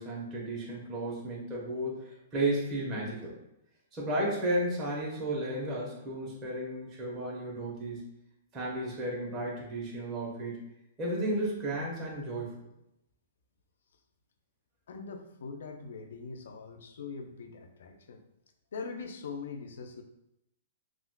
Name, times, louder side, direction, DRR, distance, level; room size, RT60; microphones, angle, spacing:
voice 1, 0.0-3.4 3.9-8.0 8.5-10.6 11.0-12.5, right 1 dB, 20° right, -5 dB, 0.9 m, -33 dB
voice 2, 14.9-18.2 18.7-20.0, left 4 dB, 80° left, 5 dB, 0.5 m, -42 dB
3.6 x 2.3 x 2.3 m, 0.84 s
hypercardioid pair, 150°, 0 cm